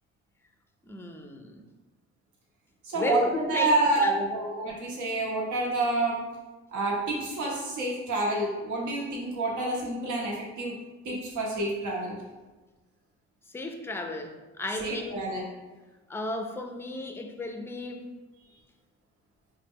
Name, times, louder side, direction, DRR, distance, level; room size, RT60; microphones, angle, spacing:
voice 1, 0.8-1.6 2.9-4.4 13.5-15.3 16.1-18.1, left 2 dB, 10° left, 4 dB, 0.4 m, -34 dB
voice 2, 2.8-6.2 6.7-10.7 11.0-12.1 14.8-15.4, right 2 dB, 80° right, -3 dB, 0.9 m, -28 dB
4.0 x 2.2 x 3.4 m, 1.2 s
cardioid pair, 90°, 30 cm